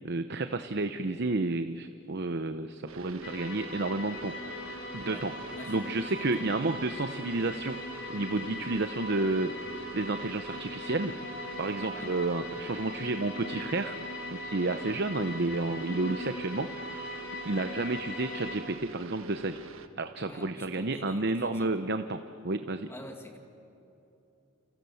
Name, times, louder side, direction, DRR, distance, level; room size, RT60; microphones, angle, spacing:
voice 1, 0.0-4.6 4.9-5.3 5.7-7.8 8.1-9.5 9.9-11.1 11.6-14.0 14.3-17.2 17.4-19.6 20.0-22.2 22.4-22.9, right 2 dB, 55° right, 9 dB, 0.8 m, -31 dB
sound 1, 2.9-19.9, right 5 dB, 80° right, 1.4 m, -46 dB
sound 2, 3.2-18.6, left 2 dB, 60° left, 3.9 m, -41 dB
voice 2, 5.6-6.5 8.4-8.7 11.9-12.1 20.2-21.8 22.9-23.4, left 1 dB, 10° left, 3 dB, 2.1 m, -47 dB
28.5 x 28.0 x 7.1 m, 2.9 s
head